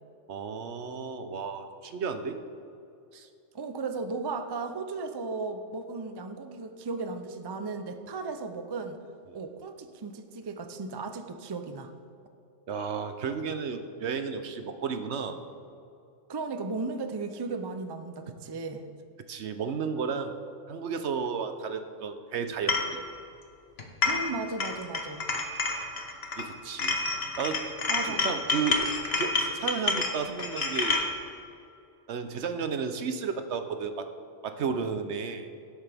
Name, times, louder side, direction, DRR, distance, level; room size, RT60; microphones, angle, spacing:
voice 1, 0.3-2.4 3.1-3.3 12.7-15.4 19.3-20.3 20.7-23.0 26.4-27.0 27.4-27.8 28.0-28.9 29.1-31.0 32.1-34.1 34.4-35.5, right 5 dB, 65° right, 8 dB, 1.0 m, -33 dB
voice 2, 3.5-9.0 9.3-11.9 16.3-18.8 24.0-25.2 27.9-28.3, right 3 dB, 35° right, 7 dB, 0.4 m, -35 dB
sound 1, 22.7-22.9 23.8-24.3 24.6-26.5 26.8-31.1, left 3 dB, 55° left, 1.3 m, -29 dB
17.0 x 8.2 x 3.5 m, 2.6 s
omnidirectional pair, 1.3 m